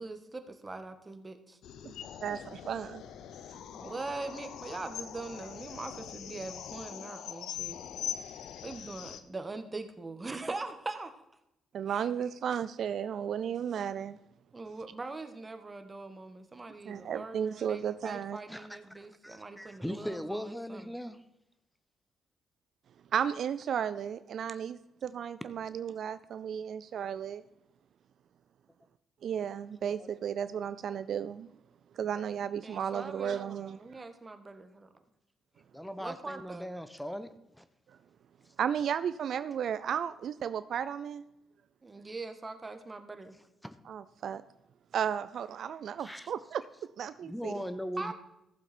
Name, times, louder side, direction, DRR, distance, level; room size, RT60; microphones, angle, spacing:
voice 1, 0.0-1.6 3.7-7.8 8.6-11.1 11.9-12.0 14.5-20.9 32.6-34.9 36.0-36.7 41.8-43.3 48.0-48.1, right 3 dB, 30° right, 8 dB, 1.4 m, -42 dB
sound 1, 1.6-9.2, left 9 dB, 80° left, 0.7 m, -42 dB
voice 2, 2.2-3.0 11.7-14.2 16.9-18.4 23.1-27.4 29.2-31.5 32.0-33.8 38.6-41.2 43.9-44.4 44.9-46.6 47.0-47.5, right 8 dB, 70° right, 14 dB, 0.4 m, -34 dB
voice 3, 18.5-21.2 30.0-30.1 35.7-37.7 43.6-43.8 46.0-46.3 47.2-48.1, equal, 5° left, 11 dB, 0.8 m, -39 dB
14.5 x 7.3 x 4.3 m, 0.86 s
supercardioid pair, 60°, 0 cm